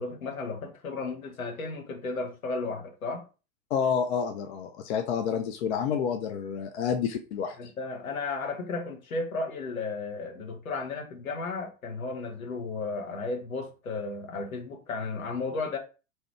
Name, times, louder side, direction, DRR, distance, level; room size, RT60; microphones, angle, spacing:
voice 1, 0.0-3.2 7.6-15.8, left 3 dB, 75° left, 1.0 m, -34 dB
voice 2, 3.7-7.7, left 7 dB, 55° left, 0.5 m, -29 dB
2.8 x 2.4 x 3.1 m
figure-of-eight pair, 90°, 42 cm